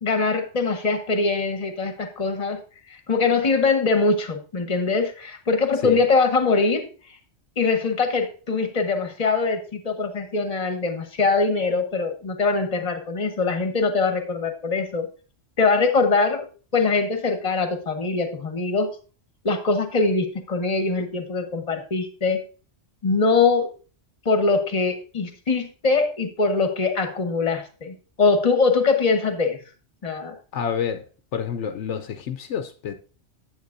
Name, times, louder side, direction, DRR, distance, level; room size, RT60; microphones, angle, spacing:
voice 1, 0.0-2.6 2.9-6.9 7.6-15.1 15.6-16.5 16.7-18.9 19.4-22.4 23.0-23.7 24.2-29.6 30.0-30.4, left 4 dB, 35° left, 1.1 m, -22 dB
voice 2, 30.5-32.9, left 8 dB, 75° left, 0.9 m, -28 dB
9.4 x 7.7 x 2.6 m
omnidirectional pair, 1.2 m